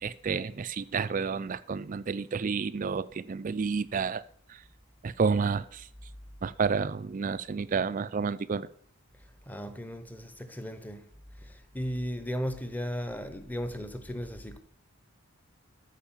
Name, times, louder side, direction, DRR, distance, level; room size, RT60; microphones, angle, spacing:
voice 1, 0.0-4.2 5.0-5.9 6.4-8.7, right 5 dB, 35° right, 0.3 m, -30 dB
voice 2, 9.5-11.1 11.4-14.6, equal, 10° left, 0.8 m, -36 dB
13.5 x 5.0 x 7.2 m
head